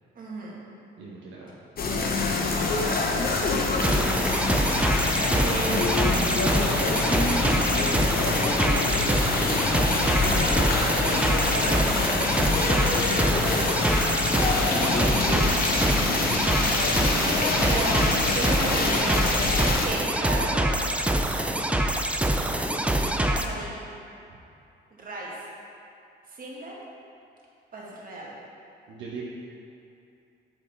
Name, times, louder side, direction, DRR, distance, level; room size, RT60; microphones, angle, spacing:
voice 1, 0.2-0.6 2.4-3.0 5.3-7.5 11.1-12.0 12.6-13.1 14.5-16.4 17.2-19.3 19.8-21.6 23.3-23.9 24.9-25.5 26.3-26.7 27.7-28.4, right 2 dB, 45° right, -4 dB, 1.8 m, -35 dB
voice 2, 1.0-1.6 17.2-17.7 28.9-29.2, right 5 dB, 75° right, -5 dB, 1.0 m, -42 dB
sound 1, 1.8-19.9, left 3 dB, 50° left, 1.0 m, -25 dB
sound 2, 3.8-23.4, right 1 dB, 5° right, 0.5 m, -25 dB
8.1 x 6.4 x 3.3 m, 2.7 s
cardioid pair, 90°, 20 cm